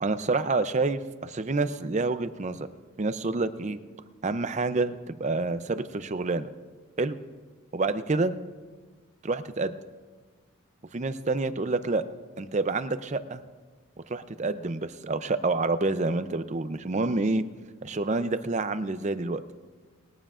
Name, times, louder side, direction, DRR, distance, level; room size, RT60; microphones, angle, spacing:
voice 1, 0.0-2.7 3.0-3.8 4.2-6.5 7.0-7.2 7.7-8.3 9.2-9.7 10.9-12.0 12.4-13.4 14.1-17.4 17.8-19.4, right 3 dB, 35° right, 12 dB, 0.5 m, -28 dB
20.5 x 14.0 x 2.5 m, 1.4 s
head